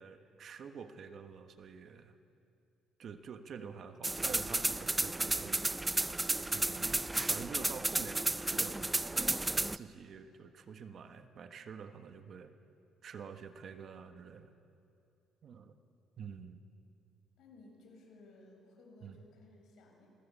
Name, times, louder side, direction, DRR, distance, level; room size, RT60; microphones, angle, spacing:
voice 1, 0.0-2.2 3.0-5.6 6.5-7.0 7.3-9.4 9.7-12.5 13.0-14.5 15.4-15.7 16.2-16.6 19.0-19.2, right 6 dB, 45° right, 8 dB, 1.4 m, -48 dB
sound 1, 4.0-9.8, right 2 dB, 10° right, 0.5 m, -33 dB
voice 2, 17.4-20.1, left 2 dB, 65° left, 1 dB, 7.5 m, -58 dB
27.0 x 19.5 x 8.4 m, 2.6 s
cardioid pair, 125°, 0 cm